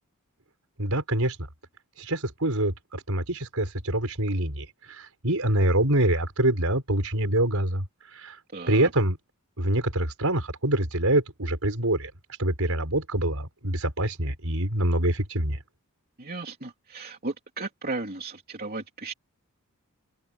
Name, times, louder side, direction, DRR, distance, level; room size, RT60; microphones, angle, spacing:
voice 1, 0.8-1.4 2.0-4.7 5.0-7.8 8.1-8.4 8.7-9.2 9.6-12.1 12.4-15.6, right 1 dB, 70° right, 6.1 m, -25 dB
voice 2, 8.5-8.9 16.2-19.1, right 3 dB, 45° right, 3.1 m, -35 dB
head